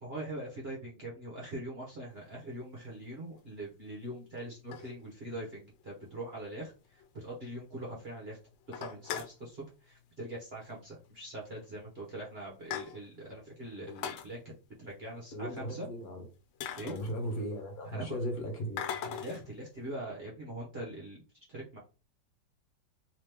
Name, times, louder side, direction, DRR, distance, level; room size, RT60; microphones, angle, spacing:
voice 1, 0.0-8.4 8.7-14.4 14.8-15.9 16.8-17.0 17.8-18.2 19.0-21.2 21.5-21.8, right 1 dB, 45° right, 0.9 m, -42 dB
sound 1, 2.5-2.6 3.4-3.5 4.4-5.4 5.8-5.9 6.1-6.2 6.6-6.7 7.0-7.1 7.4-7.9 8.2-8.3 8.6-9.4 10.5-10.7 11.0-11.1 11.9-12.0 12.3-13.3 13.8-14.3 16.0-16.1 16.6-17.6 18.8-19.5, left 9 dB, 80° left, 1.3 m, -40 dB
voice 2, 15.3-16.2 16.8-18.8, equal, 55° left, 1.3 m, -37 dB
3.2 x 2.9 x 3.3 m
omnidirectional pair, 2.0 m